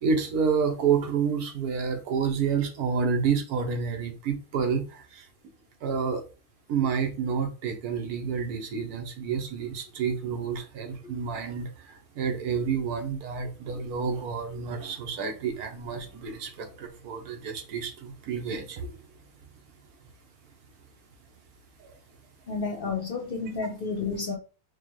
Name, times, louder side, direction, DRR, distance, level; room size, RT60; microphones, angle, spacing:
voice 1, 0.0-5.3 5.8-6.2 6.7-18.9 21.8-21.9, right 6 dB, 85° right, 1.3 m, -29 dB
voice 2, 22.5-24.4, left 4 dB, 55° left, 0.6 m, -31 dB
4.8 x 2.2 x 3.0 m
omnidirectional pair, 1.6 m